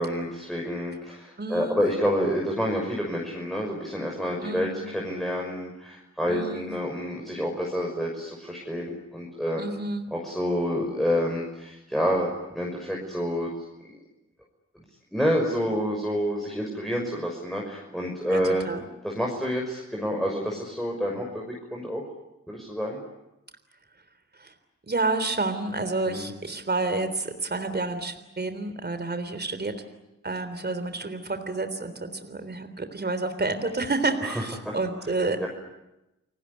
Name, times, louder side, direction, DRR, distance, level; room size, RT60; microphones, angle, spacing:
voice 1, 0.0-9.6 10.1-13.5 13.8-14.0 15.1-18.7 19.0-22.0 22.5-23.0 26.0-26.3 34.2-34.4 35.4-35.5, equal, ahead, -1 dB, 6.1 m, -28 dB
voice 2, 1.4-1.8 4.4-4.8 6.3-6.7 9.6-10.1 18.3-18.8 24.4-24.5 24.9-29.7 30.2-35.5, right 3 dB, 35° right, 9 dB, 3.6 m, -29 dB
30.0 x 19.0 x 9.8 m, 0.94 s
cardioid pair, 65°, 30 cm